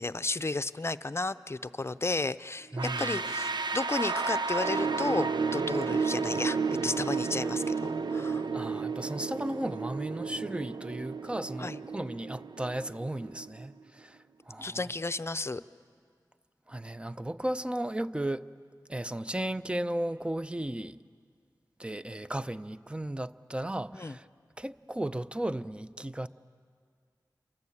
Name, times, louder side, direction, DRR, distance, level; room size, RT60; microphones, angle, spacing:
voice 1, 0.0-5.3 5.5-8.5 11.6-11.8 14.6-15.6 24.0-24.2, left 3 dB, 35° left, 0.7 m, -33 dB
voice 2, 2.7-3.2 8.5-14.9 16.7-18.5 18.9-21.0 21.8-24.3 24.6-26.3, right 1 dB, 15° right, 0.7 m, -35 dB
sound 1, 2.8-13.6, right 4 dB, 80° right, 0.7 m, -32 dB
29.0 x 23.5 x 8.7 m
wide cardioid pair, 60°, 7 cm